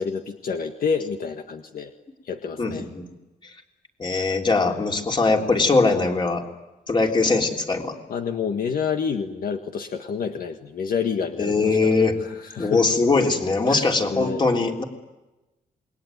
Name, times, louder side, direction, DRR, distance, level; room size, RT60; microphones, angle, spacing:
voice 1, 0.0-1.9 2.2-2.8 8.1-11.9 12.2-12.8 13.7-14.4, left 6 dB, 70° left, 5 dB, 1.7 m, -28 dB
voice 2, 2.6-3.1 4.0-6.4 6.9-8.0 11.4-12.2 12.6-14.8, left 3 dB, 30° left, 2 dB, 3.7 m, -21 dB
28.0 x 22.0 x 9.4 m, 1.1 s
wide cardioid pair, 130°, 16 cm